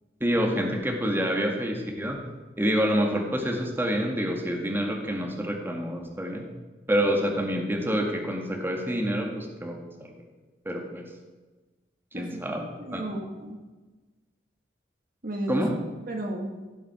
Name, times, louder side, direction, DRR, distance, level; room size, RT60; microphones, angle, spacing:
voice 1, 0.2-2.2 2.6-6.5 6.9-10.1 10.7-11.0 12.1-12.6 12.9-13.1 15.5-15.7, equal, 15° right, 1 dB, 1.8 m, -27 dB
voice 2, 12.1-13.6 15.2-15.6 16.1-16.5, right 1 dB, 55° right, 3 dB, 1.7 m, -34 dB
16.5 x 7.5 x 6.0 m, 1.2 s
head